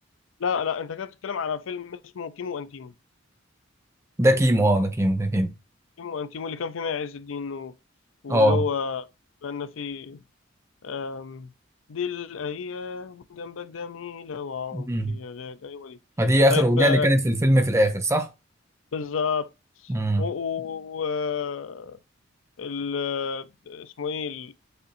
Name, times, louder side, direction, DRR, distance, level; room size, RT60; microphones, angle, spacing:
voice 1, 0.4-2.9 6.0-7.7 8.2-9.1 9.4-10.2 10.8-11.5 11.9-16.0 16.5-17.1 18.9-19.5 19.8-19.9 20.2-22.0 22.6-24.5, left 6 dB, 85° left, 0.5 m, -31 dB
voice 2, 4.2-5.5 8.3-8.6 14.7-15.2 16.2-18.3 19.9-20.3, equal, 15° right, 0.6 m, -20 dB
6.7 x 2.6 x 2.6 m
head